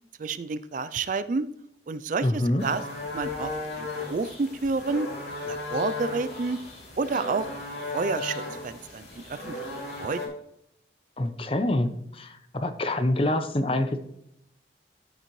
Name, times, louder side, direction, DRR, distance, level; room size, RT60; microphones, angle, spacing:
voice 1, 0.2-1.5 1.9-2.8 3.1-5.1 5.4-6.6 7.0-7.5 7.9-9.6 10.0-10.3, right 4 dB, 45° right, 13 dB, 0.4 m, -29 dB
voice 2, 2.2-2.6 11.2-14.0, left 1 dB, 30° left, 9 dB, 0.7 m, -26 dB
sound 1, 2.6-10.3, left 3 dB, 70° left, 3.1 m, -35 dB
13.0 x 6.4 x 3.1 m, 0.77 s
head